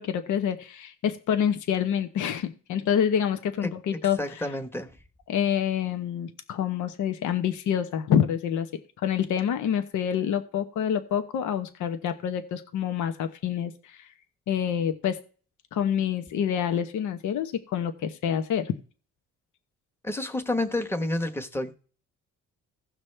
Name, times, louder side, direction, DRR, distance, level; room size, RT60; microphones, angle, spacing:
voice 1, 0.0-4.2 5.3-8.7 9.0-14.1 14.5-15.2 15.7-18.7, left 9 dB, 75° left, 8 dB, 1.0 m, -27 dB
voice 2, 3.6-5.0 20.0-21.8, left 1 dB, 10° left, 5 dB, 1.3 m, -30 dB
16.5 x 6.0 x 3.3 m, 0.38 s
cardioid pair, 90°, 30 cm